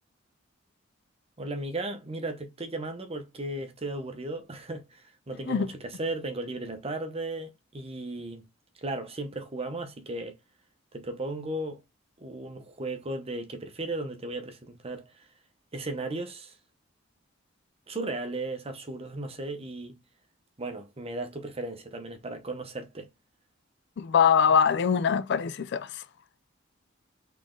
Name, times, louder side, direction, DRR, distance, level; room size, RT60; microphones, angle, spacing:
voice 1, 1.4-8.4 8.8-10.4 10.9-11.8 12.2-15.3 15.7-16.6 17.9-19.9 20.6-23.1, right 2 dB, 30° right, 0.8 m, -36 dB
voice 2, 24.0-26.0, left 7 dB, 60° left, 0.4 m, -23 dB
4.1 x 3.3 x 3.7 m
head